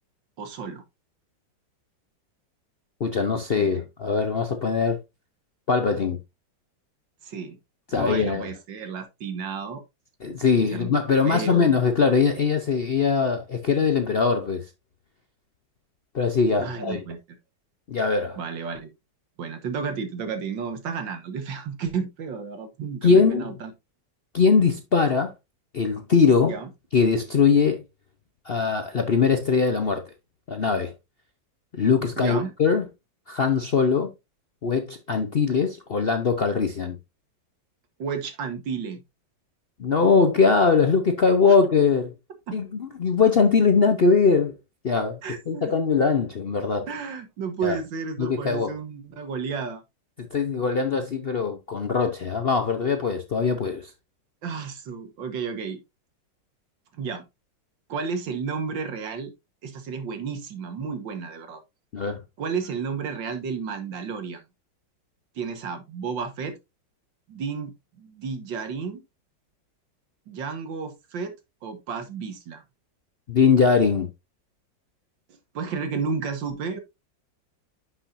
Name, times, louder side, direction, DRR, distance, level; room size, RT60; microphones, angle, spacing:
voice 1, 0.4-0.8 3.5-3.8 7.2-7.6 7.9-9.8 10.7-10.9 11.3-11.7 16.6-17.2 18.4-18.9 19.4-23.7 26.5-26.7 32.2-32.5 38.0-39.0 41.5-41.6 42.5-42.6 45.2-45.7 46.9-49.8 54.4-55.8 56.9-57.2 57.9-59.3 59.6-61.6 62.4-64.4 65.4-66.6 67.3-69.0 70.3-71.3 71.6-72.6 75.5-76.8, right 5 dB, 90° right, 2.1 m, -32 dB
voice 2, 3.0-5.0 5.7-6.2 7.9-8.5 10.2-14.6 16.1-17.0 17.9-18.4 23.0-23.6 24.3-25.3 25.7-26.6 26.9-27.8 28.4-30.0 30.5-30.9 31.7-32.9 33.3-34.1 34.6-37.0 39.8-42.1 42.5-44.5 44.8-45.2 45.5-46.9 47.6-47.8 48.2-48.7 50.3-53.9 61.9-62.2 73.3-74.1, left 5 dB, 55° left, 0.6 m, -21 dB
10.0 x 6.1 x 2.6 m
omnidirectional pair, 2.0 m